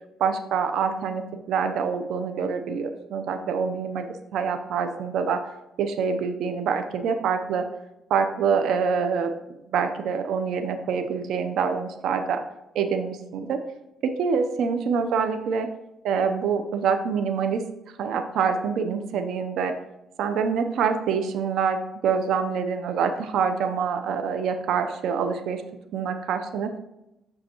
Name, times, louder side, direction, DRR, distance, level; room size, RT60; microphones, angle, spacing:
voice 1, 0.2-5.5 5.8-7.7 8.1-9.3 9.7-12.4 12.7-13.6 14.0-15.7 16.0-17.6 18.0-19.8 20.2-25.6 25.9-26.8, right 6 dB, 80° right, 7 dB, 0.7 m, -26 dB
7.7 x 6.1 x 3.0 m, 0.90 s
cardioid pair, 90°, 0 cm